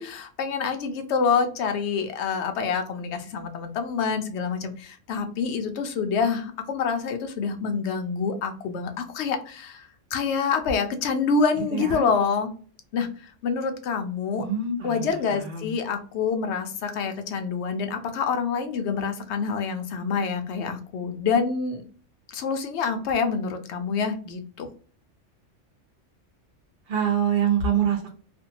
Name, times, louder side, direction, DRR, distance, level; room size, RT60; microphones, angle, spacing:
voice 1, 0.0-9.8 10.1-12.5 12.9-13.1 13.4-14.4 14.8-21.8 22.3-24.7, left 5 dB, 70° left, 6 dB, 0.8 m, -27 dB
voice 2, 11.7-12.0 14.4-15.7 26.9-28.1, right 8 dB, 55° right, 2 dB, 0.6 m, -25 dB
2.5 x 2.2 x 2.7 m, 0.41 s
omnidirectional pair, 1.3 m